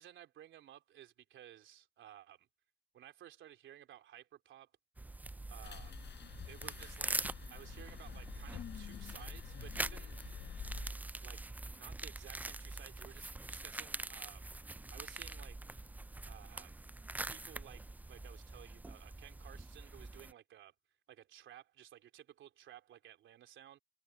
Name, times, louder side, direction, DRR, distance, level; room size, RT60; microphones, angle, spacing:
voice 1, 0.0-2.5 2.9-4.7 5.5-6.0 6.5-10.2 11.2-14.5 14.9-15.7 16.2-16.7 17.3-17.8 18.1-20.7 21.1-23.8, right 11 dB, 75° right, 3.7 m, -56 dB
sound 1, 5.0-20.3, right 2 dB, 10° right, 0.3 m, -44 dB
sound 2, 5.6-10.9, left 9 dB, 60° left, 5.9 m, -48 dB
cardioid pair, 90°, 20 cm